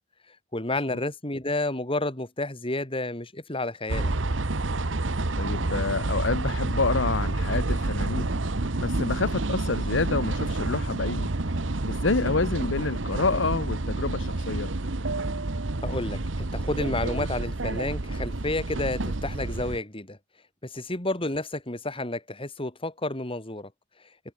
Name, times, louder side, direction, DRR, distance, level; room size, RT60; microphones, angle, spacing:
voice 1, 0.5-4.1 12.2-12.3 15.8-20.2 20.6-23.7, left 2 dB, 30° left, 3.5 m, -30 dB
sound 1, 3.9-19.8, right 2 dB, 80° right, 1.3 m, -29 dB
voice 2, 5.4-8.3 8.8-11.3 11.8-14.7, left 3 dB, 75° left, 1.1 m, -28 dB
head